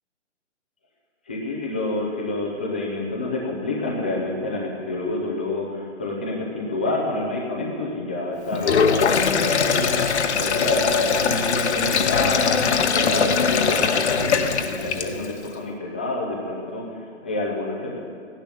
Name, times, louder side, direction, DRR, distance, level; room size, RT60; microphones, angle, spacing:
voice 1, 1.3-18.0, left 2 dB, 10° left, -2 dB, 0.5 m, -28 dB
Sink (filling or washing), 8.5-15.4, left 6 dB, 60° left, 1.0 m, -21 dB
15.5 x 10.5 x 7.5 m, 2.3 s
hypercardioid pair, 160°, 37 cm